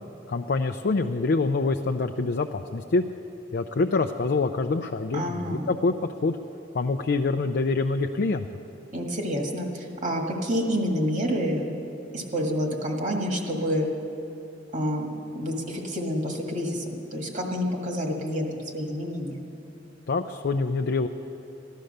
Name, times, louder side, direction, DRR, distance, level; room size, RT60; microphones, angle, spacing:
voice 1, 0.3-3.0 3.5-5.9 6.2-6.4 6.7-8.5 20.1-21.1, left 3 dB, 55° left, 5 dB, 0.5 m, -25 dB
voice 2, 5.1-5.7 8.9-11.7 12.1-13.9 14.7-19.5, equal, 40° right, 1 dB, 1.8 m, -28 dB
15.5 x 11.5 x 6.6 m, 2.8 s
head